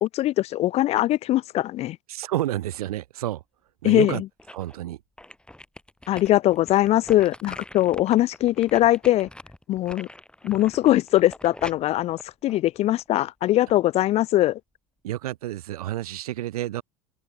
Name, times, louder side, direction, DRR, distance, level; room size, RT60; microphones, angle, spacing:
voice 1, 0.0-2.0 3.8-4.2 6.1-9.3 9.7-10.1 10.4-14.6, left 14 dB, 35° left, 0.4 m, -21 dB
voice 2, 2.1-3.4 3.8-4.2 4.5-5.0 15.0-16.8, right 14 dB, 70° right, 0.5 m, -29 dB
sound 1, 4.2-4.8 5.2-13.2 13.7-13.8, left 1 dB, 5° left, 2.7 m, -44 dB
figure-of-eight pair, 70°, 20 cm